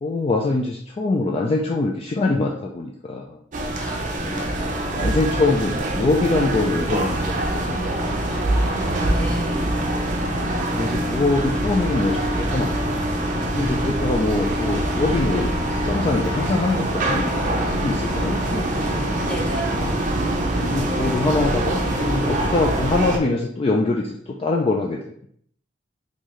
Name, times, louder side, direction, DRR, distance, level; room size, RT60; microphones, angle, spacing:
voice 1, 0.0-3.4 4.2-8.0 10.3-12.7 13.5-15.5 15.8-19.1 20.6-25.0, left 3 dB, 30° left, 0 dB, 0.3 m, -24 dB
sound 1, 3.5-23.2, right 1 dB, 45° right, 0.5 m, -24 dB
voice 2, 8.3-9.7 19.3-19.6, right 1 dB, 5° left, -2 dB, 0.8 m, -32 dB
3.8 x 2.7 x 3.1 m, 0.66 s
head